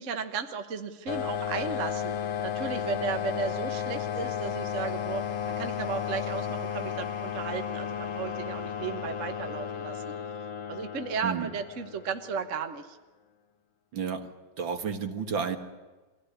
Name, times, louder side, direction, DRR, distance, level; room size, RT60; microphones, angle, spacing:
voice 1, 0.0-2.2 2.4-10.1 10.7-13.0, right 5 dB, 45° right, 7 dB, 1.2 m, -35 dB
sound 1, 1.1-12.5, left 8 dB, 65° left, 1.7 m, -34 dB
voice 2, 13.9-14.3 14.6-15.6, right 6 dB, 60° right, 6 dB, 2.3 m, -31 dB
23.5 x 16.5 x 9.9 m, 1.2 s
omnidirectional pair, 2.4 m